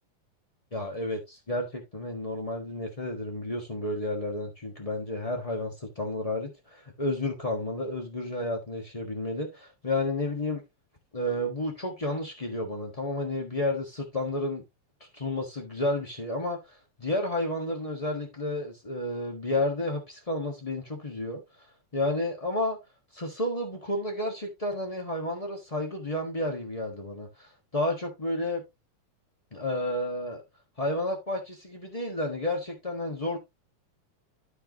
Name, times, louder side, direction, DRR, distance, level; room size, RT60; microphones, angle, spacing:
voice 1, 0.7-10.6 11.1-14.6 15.1-21.7 21.9-22.8 23.1-28.6 29.5-30.4 30.8-33.4, left 1 dB, 35° left, 0.6 m, -31 dB
13.5 x 4.7 x 2.9 m
omnidirectional pair, 3.3 m